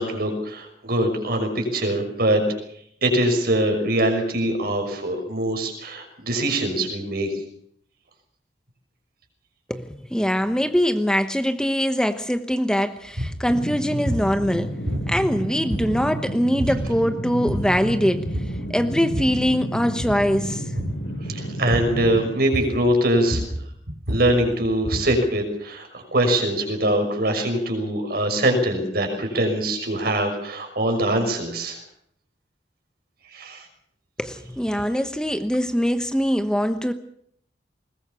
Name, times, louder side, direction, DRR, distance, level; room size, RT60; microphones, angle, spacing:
voice 1, 0.0-2.4 3.0-7.3 21.3-23.5 24.1-31.8 33.3-33.7, right 1 dB, 60° right, 5 dB, 6.0 m, -23 dB
voice 2, 9.7-14.7 15.1-18.3 18.7-20.7 34.2-36.9, equal, 5° left, 8 dB, 1.1 m, -23 dB
sound 1, 13.1-13.4 14.1-14.4 14.9-15.4 15.7-16.2 16.6-16.9 17.3-17.8 18.3-18.6 18.9-19.5 19.9-20.3 20.8-21.1 21.7-22.1 22.5-22.9 23.2-25.2, equal, 75° right, 5.3 m, -29 dB
sound 2, 13.5-22.3, equal, 80° left, 3.9 m, -31 dB
21.5 x 20.5 x 6.9 m, 0.67 s
head